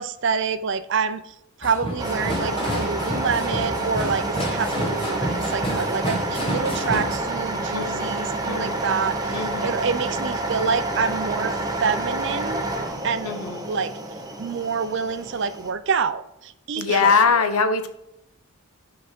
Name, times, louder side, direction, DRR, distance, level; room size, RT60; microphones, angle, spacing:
voice 1, 0.0-12.6 13.0-13.4 13.7-13.9 14.4-17.4, right 5 dB, 55° right, 12 dB, 0.4 m, -27 dB
sound 1, 1.6-7.2, equal, 25° left, 0.9 m, -29 dB
sound 2, 2.0-15.7, right 2 dB, 15° right, 0.7 m, -28 dB
voice 2, 7.7-8.2 8.5-8.8 9.3-9.7 13.2-13.6 16.8-17.9, left 5 dB, 85° left, 9 dB, 0.7 m, -22 dB
5.8 x 4.7 x 4.4 m, 0.84 s
head